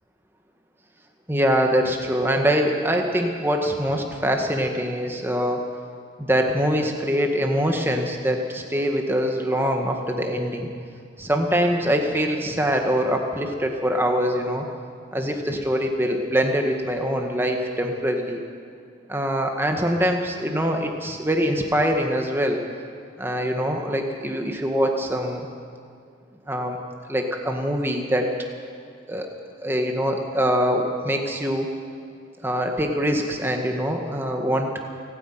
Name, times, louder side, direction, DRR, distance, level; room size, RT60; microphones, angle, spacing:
voice 1, 1.3-5.6 6.2-10.7 11.2-14.7 15.1-18.4 19.1-22.6 23.2-25.5 26.5-26.8 27.1-28.3 29.1-29.3 29.6-31.7 32.4-34.7, equal, 10° right, 2 dB, 1.8 m, -23 dB
28.0 x 10.0 x 9.3 m, 2.4 s
head